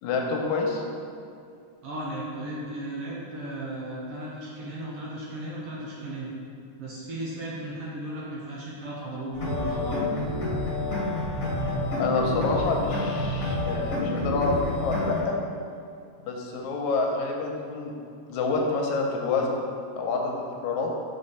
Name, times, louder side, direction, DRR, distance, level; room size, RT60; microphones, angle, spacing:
voice 1, 0.0-0.8 12.0-15.4 16.2-18.0 18.3-19.6 19.9-20.9, left 3 dB, 85° left, 0 dB, 2.0 m, -27 dB
voice 2, 1.8-6.3 6.8-10.0, right 1 dB, 65° right, -5 dB, 1.6 m, -35 dB
sound 1, 9.3-15.2, left 2 dB, 35° left, 1.7 m, -28 dB
5.0 x 4.3 x 5.4 m, 2.4 s
omnidirectional pair, 3.4 m